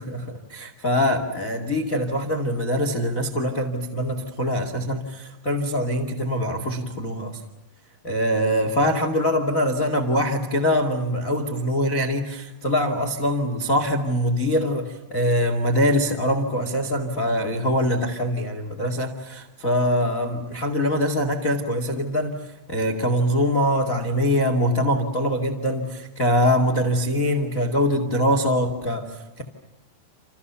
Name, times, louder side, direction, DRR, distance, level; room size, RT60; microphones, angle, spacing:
voice 1, 0.0-7.4 8.0-29.4, equal, 40° left, 6 dB, 1.2 m, -23 dB
29.0 x 28.5 x 7.0 m, 1.0 s
omnidirectional pair, 5.7 m